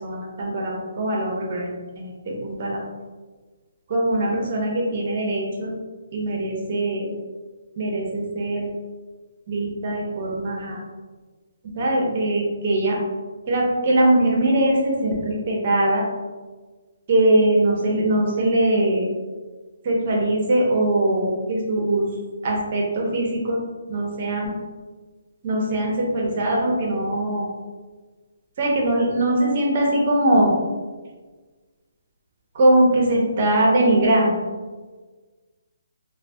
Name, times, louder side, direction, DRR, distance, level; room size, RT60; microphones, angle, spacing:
voice 1, 0.0-1.7 2.0-2.8 3.9-5.7 6.1-7.1 7.8-8.7 9.5-10.8 11.8-13.0 13.5-16.0 17.1-19.0 19.9-22.1 22.4-23.6 23.9-24.5 25.4-27.4 28.6-30.5 32.6-34.3, right 1 dB, 30° right, -1 dB, 0.5 m, -21 dB
3.5 x 2.0 x 2.5 m, 1.4 s
hypercardioid pair, 180°, 0 cm